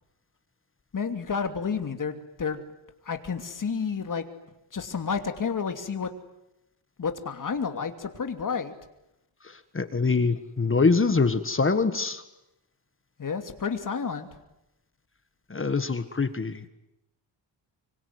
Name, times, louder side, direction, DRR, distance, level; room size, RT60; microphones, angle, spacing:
voice 1, 0.9-2.6 3.0-4.3 4.7-6.1 7.0-8.7 13.2-14.3, left 6 dB, 40° left, 7 dB, 2.8 m, -30 dB
voice 2, 9.7-12.2 15.5-16.7, left 4 dB, 25° left, 10 dB, 1.6 m, -24 dB
25.5 x 24.5 x 9.6 m, 0.89 s
wide cardioid pair, 125°, 47 cm